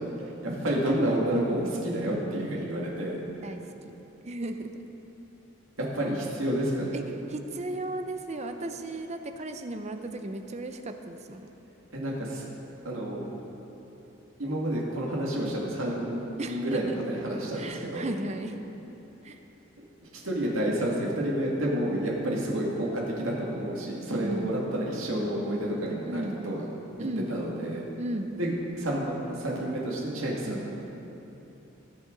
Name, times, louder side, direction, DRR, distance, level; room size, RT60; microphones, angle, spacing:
voice 1, 0.2-3.2 5.8-6.9 11.9-12.4 12.8-13.2 14.4-16.2 16.4-18.1 20.0-26.7 27.3-27.8 28.4-30.7, right 1 dB, 90° right, -3 dB, 2.1 m, -29 dB
voice 2, 3.4-4.7 6.9-7.0 7.3-11.5 16.4-17.0 17.6-18.6 19.2-19.4 24.2-24.5 26.1-26.4 27.0-27.3 28.0-28.3 30.5-30.6, right 1 dB, 35° right, 7 dB, 0.6 m, -35 dB
19.0 x 6.7 x 3.9 m, 3.0 s
head